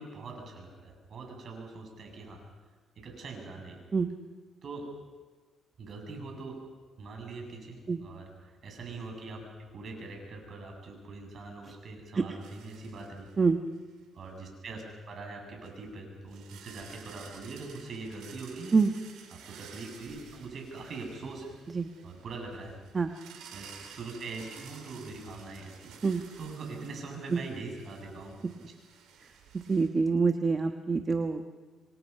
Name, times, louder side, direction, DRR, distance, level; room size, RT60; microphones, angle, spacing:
voice 1, 0.0-2.4 3.0-3.8 4.6-4.9 5.8-6.6 7.0-8.3 8.6-13.3 14.1-18.8 19.3-21.6 22.0-22.8 23.5-28.4, right 3 dB, 55° right, 2 dB, 7.5 m, -42 dB
sound 1, 12.4-13.4 13.8-13.9 15.6-15.7 16.3-29.9, right 7 dB, 85° right, 4.1 m, -53 dB
voice 2, 29.7-31.6, right 4 dB, 35° right, 6 dB, 1.2 m, -26 dB
27.5 x 25.0 x 5.6 m, 1.4 s
cardioid pair, 90°, 0 cm